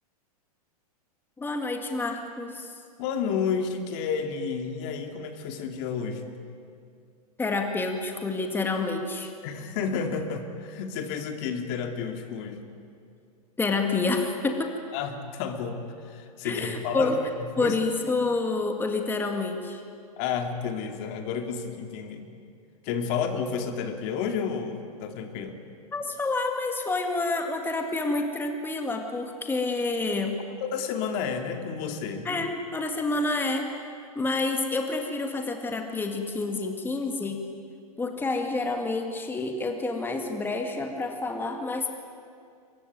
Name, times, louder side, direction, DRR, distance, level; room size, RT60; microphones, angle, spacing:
voice 1, 1.4-2.7 7.4-9.3 13.6-14.7 16.4-17.2 17.6-19.8 25.9-30.4 32.2-33.7 34.2-37.4 38.0-41.9, left 3 dB, 10° left, 4 dB, 2.1 m, -28 dB
voice 2, 3.0-6.4 9.4-12.6 14.9-15.8 16.0-17.2 17.6-17.7 20.2-22.2 22.8-25.6 30.6-32.3, left 6 dB, 50° left, 6 dB, 2.6 m, -31 dB
23.0 x 21.0 x 9.5 m, 2.3 s
hypercardioid pair, 120°, 20 cm